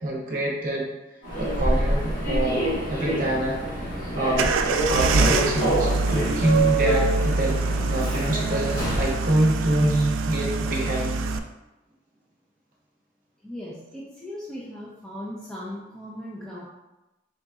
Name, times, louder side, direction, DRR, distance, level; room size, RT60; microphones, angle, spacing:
voice 1, 0.0-0.9 1.4-3.9 4.1-4.5 4.9-7.6 7.9-11.3, right 1 dB, 45° right, -3 dB, 0.9 m, -25 dB
Human voice / Subway metro underground, 1.2-9.2, right 1 dB, 45° left, 1.4 m, -26 dB
sound 1, 4.3-11.4, right 3 dB, 80° right, 0.3 m, -25 dB
voice 2, 13.4-16.7, left 1 dB, 5° left, -8 dB, 0.5 m, -38 dB
3.9 x 3.9 x 2.3 m, 1.0 s
head